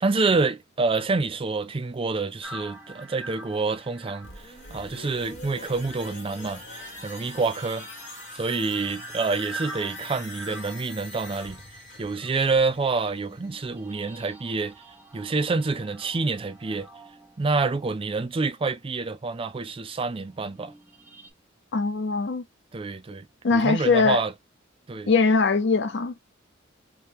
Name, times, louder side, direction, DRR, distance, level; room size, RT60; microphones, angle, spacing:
voice 1, 0.0-7.9 8.3-11.6 12.0-14.7 15.1-16.9 17.4-20.7 22.7-23.3 23.5-24.3 24.9-25.1, right 3 dB, 30° right, 0.4 m, -27 dB
sound 1, 2.4-18.9 19.5-21.3, right 1 dB, 10° right, 0.9 m, -46 dB
sound 2, 4.2-13.9 14.3-14.4, left 2 dB, 40° left, 1.7 m, -43 dB
voice 2, 21.7-22.4 23.4-24.2 25.1-26.1, left 4 dB, 65° left, 0.6 m, -21 dB
3.2 x 2.8 x 3.4 m
head